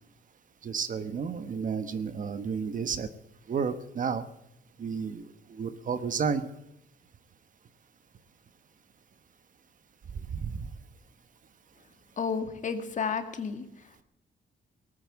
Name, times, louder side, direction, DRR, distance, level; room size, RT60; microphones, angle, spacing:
voice 1, 0.6-3.1 3.5-4.3 4.8-6.5 10.1-10.7, right 6 dB, 50° right, 12 dB, 1.3 m, -32 dB
voice 2, 12.2-14.0, left 5 dB, 45° left, 7 dB, 2.1 m, -32 dB
19.0 x 9.0 x 7.5 m, 0.83 s
cardioid pair, 130°, 17 cm